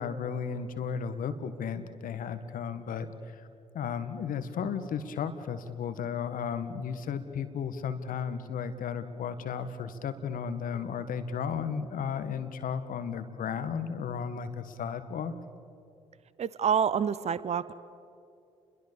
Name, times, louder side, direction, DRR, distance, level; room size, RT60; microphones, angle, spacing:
voice 1, 0.0-3.5 3.7-15.3, left 7 dB, 65° left, 10 dB, 1.7 m, -34 dB
voice 2, 16.4-17.7, right 7 dB, 45° right, 17 dB, 0.8 m, -27 dB
29.5 x 22.5 x 7.0 m, 2.6 s
hypercardioid pair, 45°, 15 cm